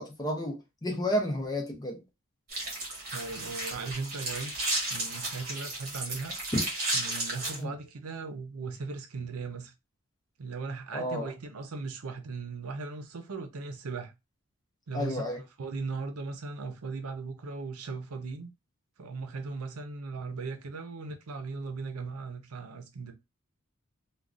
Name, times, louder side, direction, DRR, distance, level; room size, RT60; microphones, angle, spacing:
voice 1, 0.0-2.0 7.6-7.7 10.9-11.3 14.9-15.4, equal, 20° left, 0.7 m, -31 dB
sound 1, 2.5-7.6, right 2 dB, 45° right, 1.5 m, -33 dB
voice 2, 3.1-4.5 4.9-6.3 6.9-9.7 10.4-14.1 14.9-18.5 19.0-23.1, right 4 dB, 85° right, 0.6 m, -38 dB
3.5 x 2.3 x 2.5 m
head